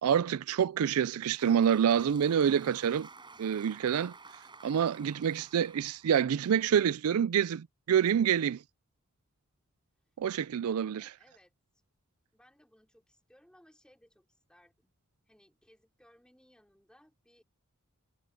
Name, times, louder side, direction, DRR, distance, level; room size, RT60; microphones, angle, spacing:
voice 1, 0.0-3.1 3.4-4.1 4.6-8.6 10.2-11.1, right 8 dB, 75° right, 0.4 m, -27 dB
Applause, 0.9-7.3, right 4 dB, 20° right, 5.6 m, -53 dB
voice 2, 5.2-5.7 11.0-11.5 12.3-14.9 15.3-17.4, equal, 5° left, 5.0 m, -64 dB
head